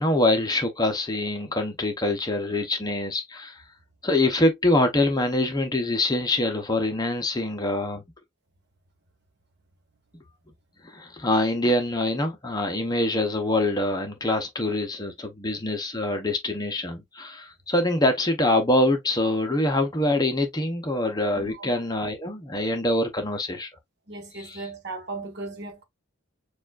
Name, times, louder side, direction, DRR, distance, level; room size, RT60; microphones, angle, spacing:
voice 1, 0.0-3.6 4.0-8.0 10.8-23.7 24.3-24.6, left 1 dB, 20° left, 0.7 m, -24 dB
voice 2, 21.3-21.7 24.1-25.8, right 2 dB, 50° right, 1.3 m, -37 dB
6.9 x 2.4 x 2.4 m
head